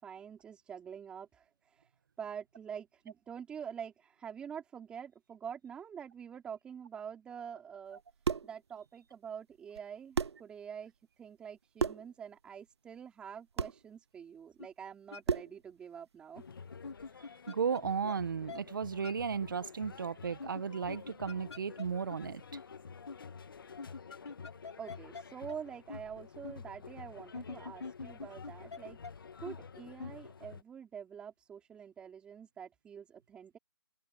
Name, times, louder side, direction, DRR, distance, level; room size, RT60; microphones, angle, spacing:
voice 1, 0.0-1.9 2.2-8.0 8.4-16.4 24.8-33.6, right 7 dB, 5° right, 4.7 m, -46 dB
sound 1, 8.0-8.6 9.7-9.8 10.1-10.5 11.8-12.1 13.6-13.8 15.2-15.6, right 6 dB, 80° right, 0.5 m, -33 dB
sound 2, 14.6-14.7 15.1-15.2 16.8-17.8 18.1-18.2 18.5-18.6 19.0-19.1 20.4-21.8 22.1-22.2 22.5-22.6 23.1-23.2 23.8-25.2 25.5-25.6 25.9-26.0 26.4-26.5 27.3-28.8 29.0-29.1 29.4-29.6 30.0-30.1, left 4 dB, 80° left, 2.8 m, -44 dB
sound 3, 16.4-30.6, left 5 dB, 55° left, 1.7 m, -50 dB
voice 2, 17.5-22.4, right 6 dB, 50° right, 1.8 m, -35 dB
open air
hypercardioid pair, 165°, 14 cm